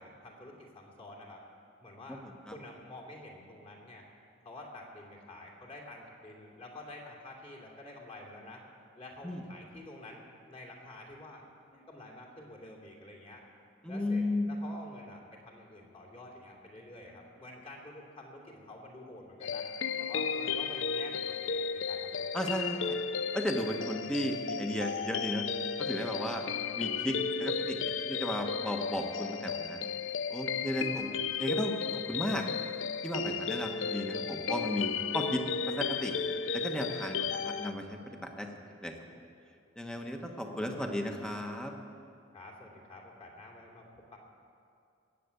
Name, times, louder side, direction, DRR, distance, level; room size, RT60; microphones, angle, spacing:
voice 1, 0.0-1.4 1.8-4.1 4.4-8.6 9.0-11.4 11.7-13.4 13.9-19.6 20.0-22.7 42.3-44.2, left 1 dB, 30° left, -1 dB, 2.8 m, -49 dB
voice 2, 13.8-14.5 22.3-23.0 23.3-25.5 25.8-26.4 26.8-29.8 30.3-31.1 31.4-32.4 33.0-35.4 35.7-36.1 36.5-38.0 38.4-38.5 38.8-38.9 39.8-41.7, left 1 dB, 5° left, 3 dB, 1.3 m, -34 dB
sound 1, 19.4-37.7, left 6 dB, 75° left, 0.6 m, -34 dB
20.0 x 7.8 x 8.3 m, 2.5 s
head